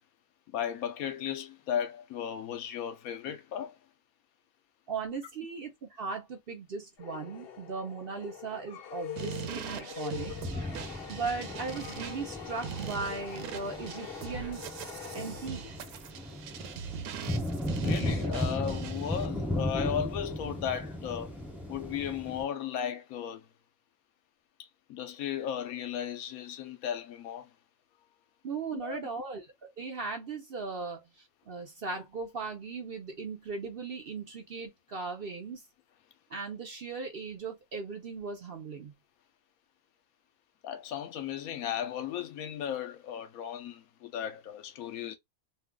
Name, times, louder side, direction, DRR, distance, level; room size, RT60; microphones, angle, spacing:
voice 1, 0.5-3.8 17.8-21.4 21.7-23.5 24.6-27.5 28.7-29.0 40.6-45.2, left 9 dB, 75° left, 1.1 m, -35 dB
voice 2, 4.9-10.3 11.1-14.6 15.1-15.7 28.4-35.7 36.3-38.9, right 4 dB, 50° right, 0.7 m, -38 dB
sound 1, 7.0-16.1, left 9 dB, 60° left, 0.7 m, -44 dB
sound 2, 9.2-19.3, right 8 dB, 85° right, 1.1 m, -42 dB
sound 3, 10.2-22.4, left 1 dB, ahead, 0.7 m, -36 dB
2.6 x 2.3 x 3.6 m
omnidirectional pair, 1.5 m